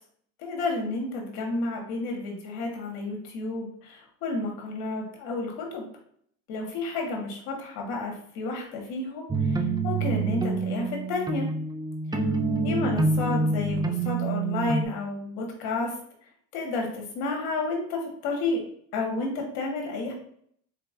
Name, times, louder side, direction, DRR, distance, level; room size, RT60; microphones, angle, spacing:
voice 1, 0.4-5.8 6.5-11.5 12.1-12.3 12.6-15.9 16.5-18.6 18.9-20.1, left 3 dB, 80° left, 0 dB, 1.5 m, -31 dB
sound 1, 9.3-14.8, right 3 dB, 10° right, 0.6 m, -27 dB
4.5 x 4.3 x 2.5 m, 0.66 s
supercardioid pair, 85°, 36 cm